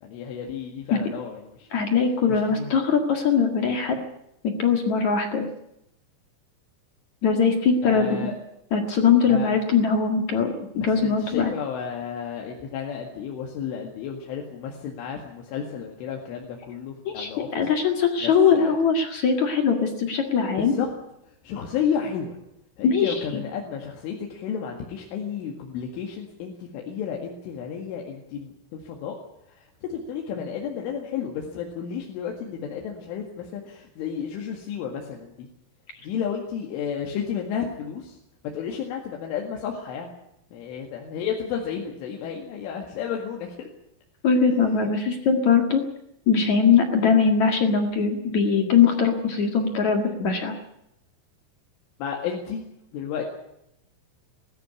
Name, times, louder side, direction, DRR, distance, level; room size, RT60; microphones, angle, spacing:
voice 1, 0.0-1.7 2.3-2.8 7.8-8.4 9.2-9.5 10.8-17.7 18.2-18.8 20.6-20.9 21.2-22.4 22.8-29.2 29.5-35.5 36.0-38.2 38.5-40.1 40.5-43.7 44.5-44.9 52.0-52.7 52.9-53.2, left 7 dB, 80° left, 0 dB, 4.5 m, -32 dB
voice 2, 1.7-4.0 4.6-5.5 7.2-8.2 8.7-11.5 17.1-20.7 22.8-23.2 44.2-45.8 46.3-50.5, left 6 dB, 50° left, 4 dB, 2.4 m, -21 dB
20.5 x 14.0 x 9.6 m, 0.79 s
omnidirectional pair, 5.6 m